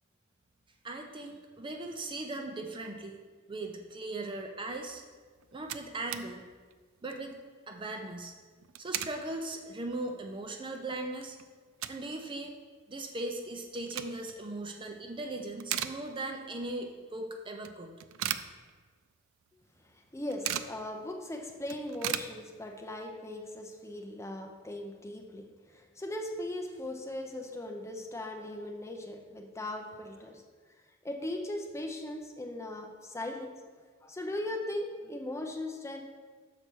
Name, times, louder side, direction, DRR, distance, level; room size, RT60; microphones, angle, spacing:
voice 1, 0.8-3.2 3.5-5.0 5.5-6.4 7.0-7.3 7.7-8.3 8.8-11.4 11.9-12.6 12.9-17.9, right 2 dB, 25° right, 4 dB, 0.5 m, -38 dB
sound 1, 5.1-5.2 5.4-6.3 6.7-6.8 7.0-7.3 8.5-9.2 9.7-9.8 10.3-10.4 10.7-12.2 12.5-12.6 13.6-14.4 14.9-15.2 15.5-16.5 16.8-16.9 17.6-19.1 19.4-19.5 19.8-20.8 21.2-21.3 21.5-22.9, right 11 dB, 80° right, 0.4 m, -37 dB
voice 2, 19.9-30.4 31.0-33.5 34.0-36.1, left 1 dB, 15° left, 3 dB, 0.6 m, -39 dB
6.7 x 4.3 x 6.2 m, 1.5 s
head